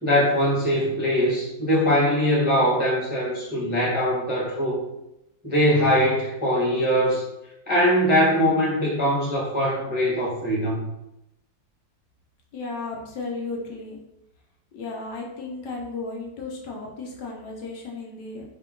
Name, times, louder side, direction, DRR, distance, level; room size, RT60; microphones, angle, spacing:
voice 1, 0.0-4.8 5.4-7.2 7.7-10.9, equal, 10° right, -6 dB, 0.7 m, -22 dB
voice 2, 12.5-14.0 14.7-18.4, left 3 dB, 70° left, -1 dB, 1.3 m, -34 dB
4.6 x 2.8 x 3.8 m, 0.88 s
omnidirectional pair, 2.1 m